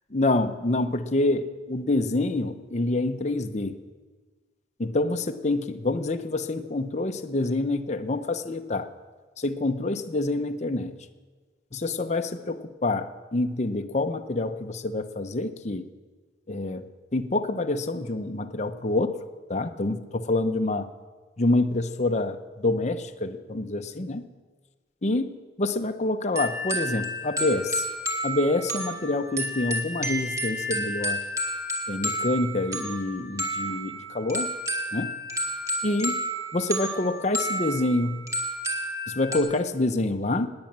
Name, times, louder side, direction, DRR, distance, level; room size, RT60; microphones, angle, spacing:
voice 1, 0.1-3.8 4.8-8.9 9.4-10.9 11.7-15.8 16.5-16.8 17.1-19.1 19.5-20.9 21.4-24.2 25.0-27.8 28.2-31.2 31.9-34.5 34.9-35.1 35.8-36.2 36.5-38.3 39.2-40.5, left 2 dB, 40° left, 7 dB, 0.8 m, -27 dB
sound 1, 26.3-39.4, right 1 dB, 15° right, 2.2 m, -31 dB
19.5 x 9.7 x 7.4 m, 1.4 s
head